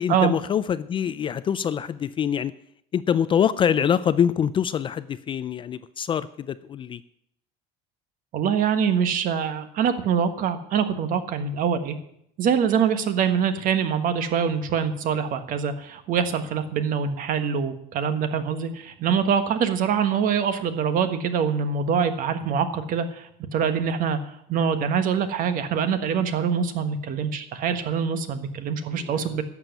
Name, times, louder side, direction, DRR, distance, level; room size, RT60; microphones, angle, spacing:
voice 1, 0.0-2.5 2.9-7.0, left 8 dB, 30° left, 15 dB, 0.4 m, -24 dB
voice 2, 8.3-11.9 12.4-24.2 24.5-29.4, right 7 dB, 50° right, 9 dB, 1.4 m, -24 dB
11.5 x 7.2 x 9.1 m, 0.72 s
cardioid pair, 145°, 18 cm